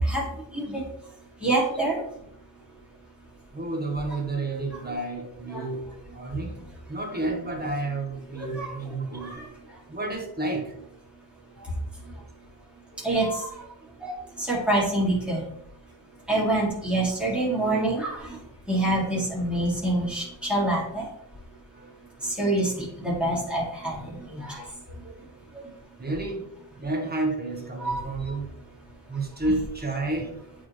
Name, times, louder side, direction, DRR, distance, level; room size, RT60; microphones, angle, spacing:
voice 1, 1.4-2.0 5.5-5.6 8.4-8.7 13.0-13.5 14.0-14.1 14.5-15.4 16.3-18.2 18.7-21.0 22.4-24.0 24.4-24.5 27.8-28.0, right 1 dB, ahead, -6 dB, 2.4 m, -25 dB
voice 2, 3.5-5.8 6.1-6.6 6.9-9.4 9.9-10.7 21.7-21.9 26.0-26.5 26.8-28.5 29.1-30.4, right 2 dB, 20° right, 1 dB, 1.2 m, -30 dB
8.4 x 3.9 x 3.2 m, 0.74 s
wide cardioid pair, 140°, 43 cm